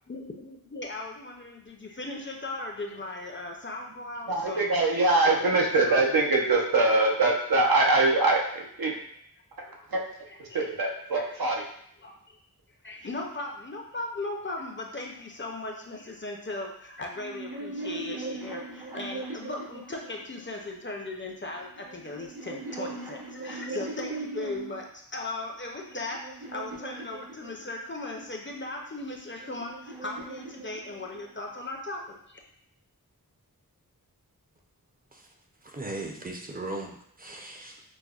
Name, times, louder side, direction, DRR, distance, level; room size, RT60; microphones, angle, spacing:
voice 1, 0.1-4.7 5.1-6.0 9.6-9.9 10.5-10.7 11.1-11.2 12.0-12.4 12.8-24.9 25.1-32.4, left 2 dB, 30° left, 1 dB, 0.5 m, -37 dB
voice 2, 4.3-8.9 9.9-10.0 10.4-11.6, right 2 dB, 70° right, -1 dB, 0.7 m, -23 dB
sound 1, 17.1-20.5 21.5-24.9 25.5-27.9 29.0-31.4, right 2 dB, 90° right, 1.1 m, -40 dB
voice 3, 35.6-37.8, right 2 dB, 25° right, 1 dB, 0.6 m, -38 dB
5.1 x 2.0 x 2.4 m, 0.69 s
wide cardioid pair, 45°, 36 cm